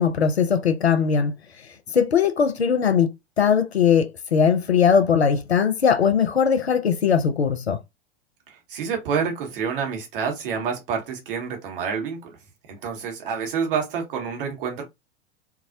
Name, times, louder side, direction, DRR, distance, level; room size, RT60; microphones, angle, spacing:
voice 1, 0.0-1.4 1.9-3.1 3.4-7.8, left 7 dB, 90° left, 0.5 m, -20 dB
voice 2, 8.5-12.4 12.7-14.8, right 6 dB, 60° right, 1.1 m, -28 dB
2.3 x 2.0 x 2.6 m
figure-of-eight pair, 90°, 31 cm